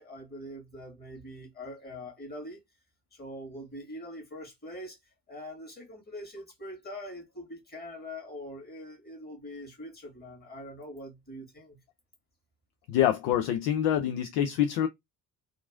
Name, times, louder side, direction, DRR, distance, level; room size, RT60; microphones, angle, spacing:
voice 1, 0.0-2.6 3.1-5.0 5.3-11.8, left 1 dB, 20° left, 1.7 m, -43 dB
voice 2, 12.9-14.9, left 10 dB, 60° left, 0.5 m, -26 dB
2.9 x 2.5 x 2.3 m
figure-of-eight pair, 45°, 47 cm